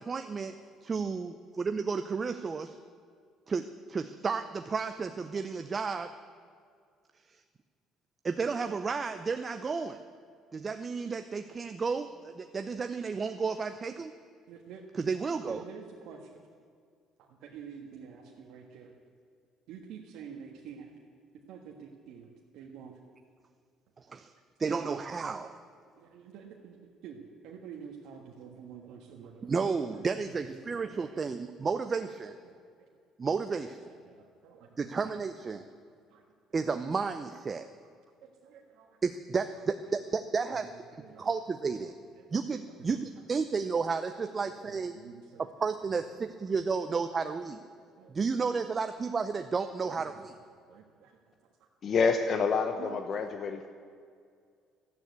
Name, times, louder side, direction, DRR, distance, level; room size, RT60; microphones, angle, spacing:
voice 1, 0.0-0.6 0.8-2.8 3.5-6.1 8.2-10.0 10.5-14.1 15.0-15.6 24.0-24.3 24.6-25.6 29.4-32.4 33.2-33.9 34.8-35.6 36.5-37.6 39.0-40.7 41.2-41.9 42.3-45.0 45.6-47.6 48.1-50.1, right 5 dB, 35° right, 9 dB, 0.6 m, -32 dB
voice 2, 14.5-15.0 15.4-16.4 17.2-19.0 19.7-20.9 21.5-22.3 22.5-23.0 25.3-25.5 25.9-26.8 27.0-29.5 29.9-31.2 32.4-32.9 33.8-35.1 36.1-36.3 38.2-39.0 39.6-39.7 40.5-41.3 41.7-42.3 42.7-43.1 44.3-45.5 45.9-46.2 46.8-47.4 48.0-48.1 48.7-48.8 49.8-50.3 50.7-51.1 52.8-53.0, right 7 dB, 75° right, 0 dB, 1.5 m, -49 dB
voice 3, 51.8-53.7, left 5 dB, 50° left, 7 dB, 0.9 m, -28 dB
12.0 x 9.4 x 9.5 m, 2.2 s
supercardioid pair, 80°, 0 cm